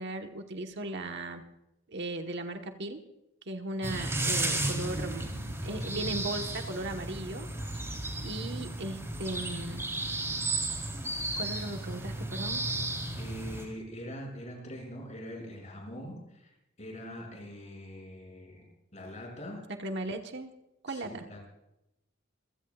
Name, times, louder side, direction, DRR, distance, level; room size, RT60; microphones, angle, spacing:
voice 1, 0.0-1.4 1.9-3.0 3.5-7.5 7.7-7.8 8.2-9.8 11.4-12.6 19.8-20.5 20.8-21.2, right 2 dB, 60° right, 5 dB, 1.3 m, -37 dB
sound 1, 3.8-13.6, right 2 dB, 15° right, 3.5 m, -34 dB
voice 2, 13.2-18.6 18.9-19.6 20.9-21.5, equal, 35° left, 1 dB, 6.2 m, -43 dB
27.0 x 16.5 x 2.4 m, 0.86 s
head